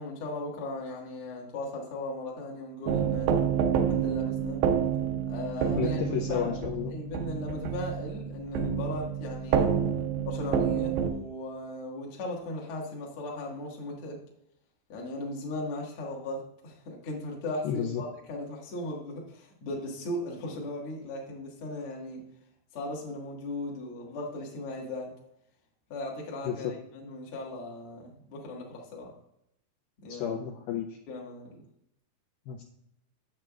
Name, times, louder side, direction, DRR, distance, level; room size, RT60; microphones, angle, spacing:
voice 1, 0.0-3.3 3.9-4.6 5.3-6.0 6.3-6.6 6.9-9.7 10.2-14.2 14.9-22.2 22.7-25.1 25.9-29.1 30.0-30.4 31.1-31.6, left 2 dB, 55° left, -3 dB, 1.6 m, -37 dB
sound 1, 2.9-11.1, right 8 dB, 80° right, 2.1 m, -28 dB
voice 2, 5.8-6.9 17.6-18.0 26.5-26.7 30.1-31.0 32.5-32.6, left 8 dB, 85° left, 1 dB, 2.2 m, -32 dB
8.5 x 7.7 x 2.4 m, 0.79 s
omnidirectional pair, 4.9 m